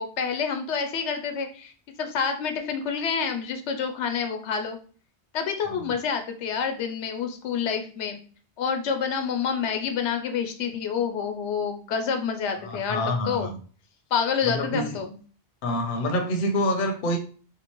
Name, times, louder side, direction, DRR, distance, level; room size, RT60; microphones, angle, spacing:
voice 1, 0.0-1.7 2.0-4.8 5.3-8.2 8.6-13.5 14.1-15.1, left 6 dB, 90° left, 0.9 m, -28 dB
voice 2, 12.6-13.6 14.4-15.0 15.6-17.2, left 1 dB, 55° left, 0.7 m, -27 dB
3.6 x 2.8 x 3.0 m
omnidirectional pair, 1.1 m